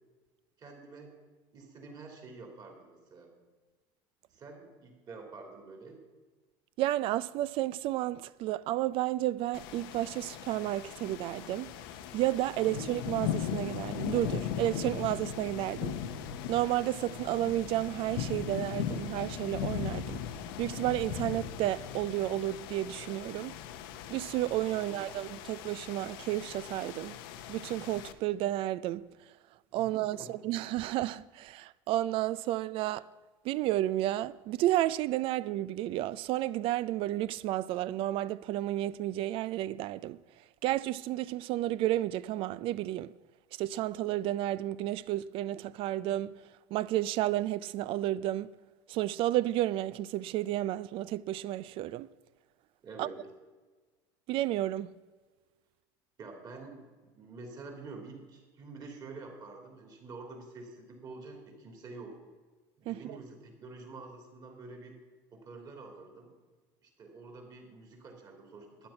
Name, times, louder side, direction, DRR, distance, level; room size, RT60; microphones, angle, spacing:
voice 1, 0.6-1.1 1.5-3.3 4.3-6.0 12.7-12.9 24.8-25.0 29.7-30.3 52.8-53.2 56.2-62.2 62.8-64.9 65.3-66.3 66.8-68.9, right 3 dB, 35° right, 3.0 m, -48 dB
voice 2, 6.8-11.7 12.1-15.9 16.5-20.2 20.6-23.6 24.1-27.2 27.5-29.1 29.7-30.2 30.4-33.1 33.4-40.2 40.6-43.1 43.6-46.3 46.7-48.5 48.9-52.1 53.0-53.1 54.3-55.0 62.9-63.2, right 14 dB, 50° right, 0.4 m, -31 dB
sound 1, 9.5-28.1, left 9 dB, 80° left, 0.9 m, -39 dB
11.5 x 9.7 x 5.8 m
supercardioid pair, 130°, 12 cm